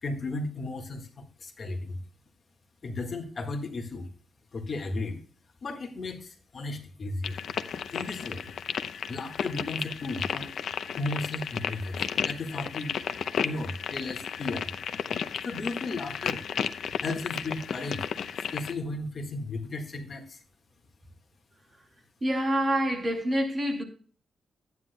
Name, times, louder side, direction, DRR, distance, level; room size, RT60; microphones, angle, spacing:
voice 1, 0.0-2.0 2.8-4.1 4.5-5.2 5.6-7.4 7.9-8.5 9.1-10.5 10.9-13.0 13.4-14.7 15.4-16.4 17.0-18.1 18.5-20.4, left 2 dB, 45° left, 1.7 m, -35 dB
sound 1, 7.2-18.7, left 7 dB, 75° left, 0.7 m, -33 dB
voice 2, 22.2-23.8, equal, 25° right, 2.5 m, -26 dB
14.0 x 9.7 x 2.3 m
cardioid pair, 110°, 0 cm